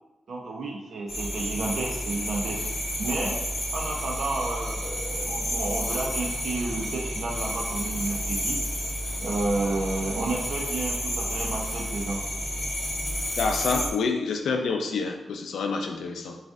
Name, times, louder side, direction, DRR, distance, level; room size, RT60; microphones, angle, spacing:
voice 1, 0.3-2.6 3.0-3.4 3.7-8.6 9.2-12.2, right 2 dB, 75° right, -2 dB, 0.7 m, -31 dB
sound 1, 1.1-13.9, equal, 45° left, 1.3 m, -31 dB
voice 2, 13.4-16.4, left 4 dB, 90° left, 3 dB, 0.4 m, -27 dB
6.0 x 2.5 x 2.5 m, 0.99 s
cardioid pair, 85°, 0 cm